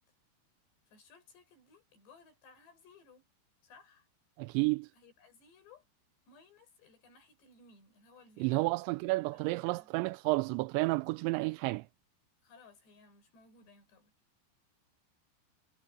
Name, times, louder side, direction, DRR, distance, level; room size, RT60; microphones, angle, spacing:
voice 1, 0.9-3.3 3.6-4.1 4.9-5.8 6.3-8.7 9.3-9.9 12.4-14.1, left 4 dB, 70° left, 8.2 m, -60 dB
voice 2, 4.4-4.9 8.4-11.9, right 24 dB, 85° right, 2.8 m, -31 dB
omnidirectional pair, 5.2 m